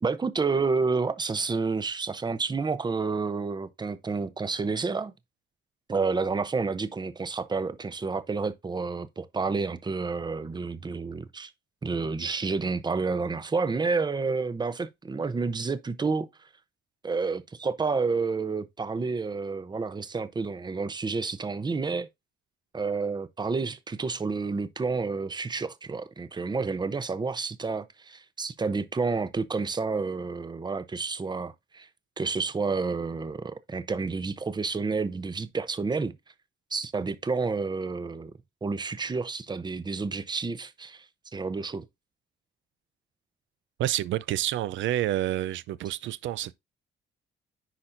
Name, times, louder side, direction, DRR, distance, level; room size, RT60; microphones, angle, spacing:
voice 1, 0.0-5.1 5.9-11.5 11.8-16.3 17.0-22.1 22.7-31.9 32.2-36.2 36.7-38.3 38.6-41.0 41.3-41.9, right 4 dB, 20° right, 0.7 m, -30 dB
voice 2, 43.8-46.5, right 13 dB, 75° right, 0.5 m, -28 dB
10.0 x 4.3 x 2.6 m
cardioid pair, 90°, 20 cm